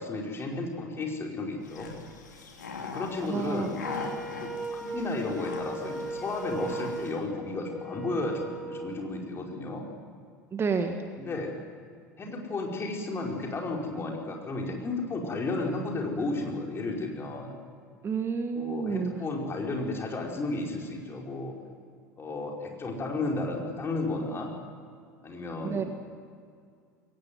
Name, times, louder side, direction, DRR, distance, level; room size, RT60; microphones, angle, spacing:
voice 1, 0.0-1.9 2.8-3.8 4.4-9.9 11.2-11.5 12.2-17.6 18.5-21.5 22.2-24.5 25.2-25.9, left 2 dB, 25° left, 0 dB, 4.9 m, -33 dB
sound 1, 1.6-7.2, left 4 dB, 75° left, 2.9 m, -41 dB
voice 2, 3.2-3.7 10.5-11.0 18.0-19.1 25.6-25.8, right 5 dB, 25° right, 6 dB, 1.8 m, -29 dB
Wind instrument woodwind instrument, 3.8-9.1, right 2 dB, 5° right, 2.0 m, -38 dB
22.5 x 18.5 x 9.6 m, 2.2 s
figure-of-eight pair, 75°, 10 cm